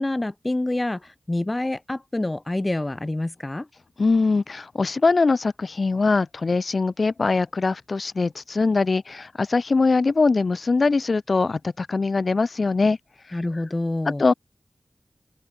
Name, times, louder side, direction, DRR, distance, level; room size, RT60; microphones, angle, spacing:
voice 1, 0.0-3.7 13.3-14.2, left 2 dB, 25° left, 6.8 m, -27 dB
voice 2, 4.0-13.0 13.3-13.4 14.1-14.3, left 3 dB, 65° left, 7.2 m, -22 dB
open air
wide cardioid pair, 65°, 0 cm